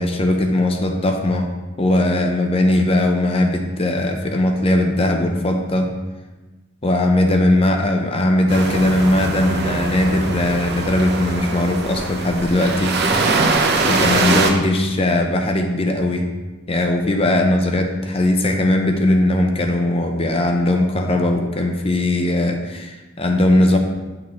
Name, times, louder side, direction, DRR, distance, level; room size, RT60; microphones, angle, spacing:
voice 1, 0.0-1.5 1.8-5.9 6.8-13.0 13.9-16.3 16.7-23.8, left 1 dB, 30° left, 4 dB, 0.6 m, -19 dB
sound 1, 8.5-14.5, right 3 dB, 50° right, 0.7 m, -22 dB
9.1 x 6.1 x 3.0 m, 1.2 s
head